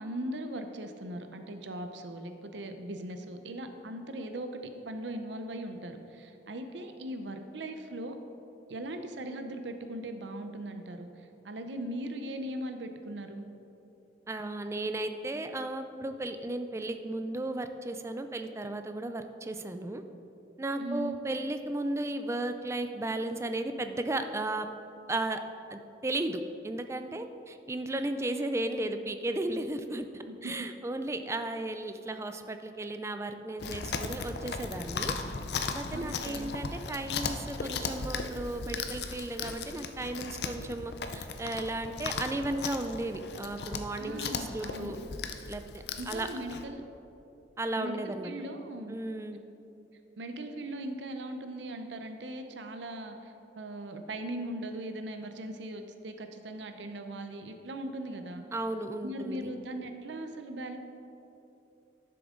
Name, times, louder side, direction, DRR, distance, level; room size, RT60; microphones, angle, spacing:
voice 1, 0.0-8.2 8.7-11.1 11.4-13.5 20.8-21.2 28.3-28.5 30.3-30.5 35.9-36.5 44.0-44.9 46.0-46.8 47.8-48.0 48.2-49.0 50.2-58.4 59.0-60.8, right 1 dB, 90° right, 7 dB, 0.7 m, -39 dB
voice 2, 14.3-20.0 20.6-24.7 25.1-25.4 25.7-35.2 35.7-45.0 45.5-46.3 47.6-48.3 48.9-49.4 58.5-59.5, right 2 dB, 15° right, 8 dB, 0.4 m, -35 dB
Chewing mastication, 33.6-46.6, left 4 dB, 65° left, 0.5 m, -37 dB
11.0 x 6.8 x 3.7 m, 2.8 s
head